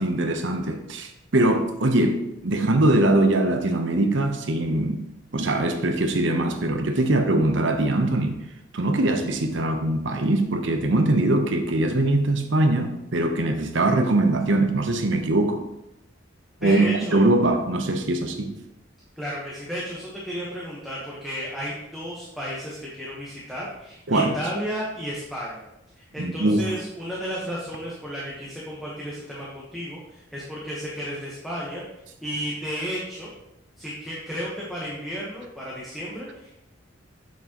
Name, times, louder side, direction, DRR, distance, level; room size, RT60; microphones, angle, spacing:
voice 1, 0.0-5.0 5.3-8.4 8.7-15.6 16.6-18.5 24.1-24.3 26.2-26.7, right 2 dB, 70° right, 5 dB, 0.8 m, -22 dB
voice 2, 16.6-17.3 19.2-25.7 26.0-31.8 32.2-33.3 33.8-36.7, equal, ahead, -7 dB, 1.1 m, -33 dB
7.1 x 6.2 x 3.0 m, 0.86 s
head